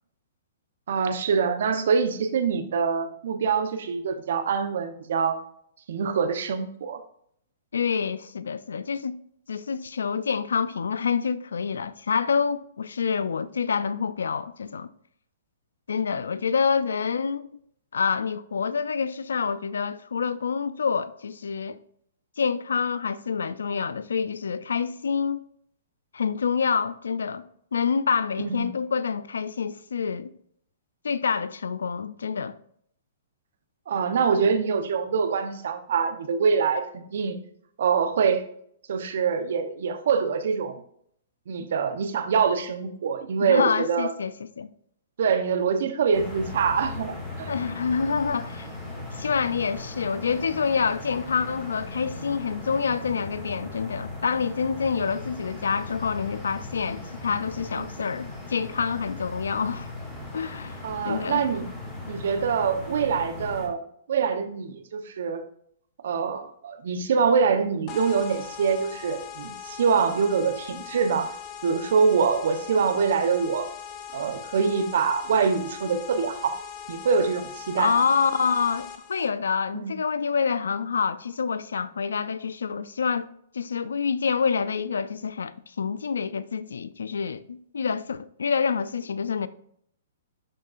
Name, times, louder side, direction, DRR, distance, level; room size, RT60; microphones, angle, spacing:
voice 1, 0.9-5.4 5.9-7.0 28.4-28.7 33.9-37.4 37.8-38.4 38.9-40.8 41.5-44.1 45.2-47.5 58.0-58.1 60.8-61.7 62.1-63.8 64.1-65.5 66.0-71.3 71.6-73.7 74.1-76.5 76.9-77.9 79.7-79.9, right 6 dB, 70° right, 0.9 m, -24 dB
voice 2, 7.7-9.2 9.5-14.9 15.9-17.5 17.9-21.8 22.4-25.4 26.1-27.4 27.7-30.3 31.0-32.6 43.4-44.7 47.5-48.7 49.1-59.9 60.3-61.4 77.8-83.3 83.5-89.5, left 6 dB, 85° left, 0.4 m, -27 dB
sound 1, 46.1-63.7, left 2 dB, 10° left, 2.0 m, -38 dB
sound 2, 67.9-79.3, left 8 dB, 30° left, 1.0 m, -40 dB
11.0 x 3.7 x 2.5 m
hypercardioid pair, 140°, 0 cm